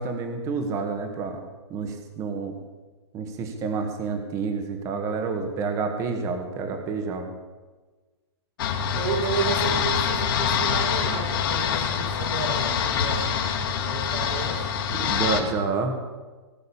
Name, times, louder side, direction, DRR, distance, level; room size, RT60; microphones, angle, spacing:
voice 1, 0.0-1.4 1.7-2.5 3.1-7.3 15.0-15.9, right 4 dB, 20° right, 6 dB, 1.6 m, -29 dB
sound 1, 8.6-15.4, left 7 dB, 50° left, 2.2 m, -25 dB
voice 2, 8.9-13.4 13.8-14.7, right 5 dB, 70° right, -1 dB, 4.6 m, -31 dB
18.5 x 6.5 x 8.8 m, 1.3 s
hypercardioid pair, 160°, 14 cm